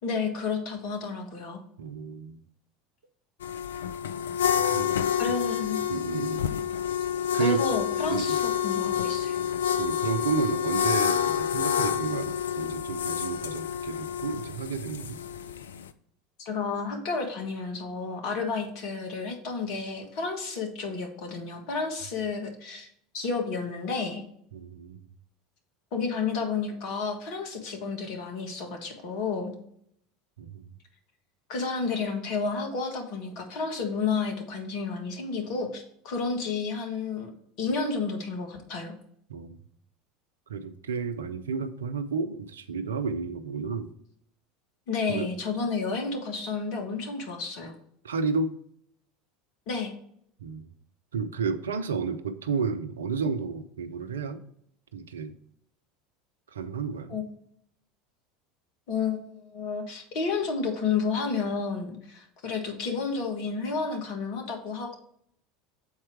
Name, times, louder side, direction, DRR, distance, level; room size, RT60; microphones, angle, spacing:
voice 1, 0.0-1.6 5.2-5.8 7.4-9.4 16.4-22.9 23.1-24.2 25.9-29.5 31.5-37.3 37.6-38.9 44.9-47.7 49.7-49.9 57.1-57.3 58.9-65.0, left 4 dB, 55° left, 3 dB, 1.6 m, -31 dB
voice 2, 1.8-2.4 4.5-4.9 5.9-6.5 7.3-7.6 8.1-8.4 9.8-15.2 24.5-25.0 30.4-30.7 39.3-39.6 40.5-43.9 45.1-45.3 48.0-48.5 50.4-50.7 51.1-54.4 54.9-55.3 56.5-57.2, right 5 dB, 75° right, 10 dB, 0.6 m, -31 dB
sound 1, 3.4-15.9, left 9 dB, 75° left, 0.4 m, -28 dB
7.3 x 4.4 x 4.6 m, 0.68 s
figure-of-eight pair, 75°, 0 cm